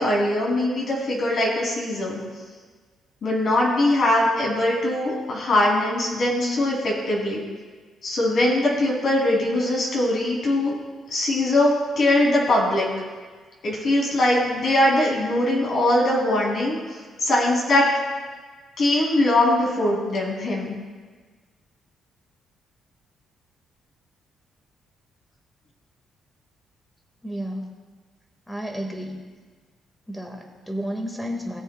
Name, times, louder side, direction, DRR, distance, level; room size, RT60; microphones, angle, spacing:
voice 1, 0.0-2.2 3.2-7.4 8.0-10.7 11.1-12.9 13.6-16.8 17.2-17.9 18.8-20.8, left 1 dB, 55° left, -3 dB, 2.9 m, -21 dB
voice 2, 27.2-27.8 28.5-29.2 30.1-31.6, equal, 5° left, 2 dB, 1.8 m, -32 dB
18.5 x 7.2 x 2.3 m, 1.5 s
cardioid pair, 90°, 0 cm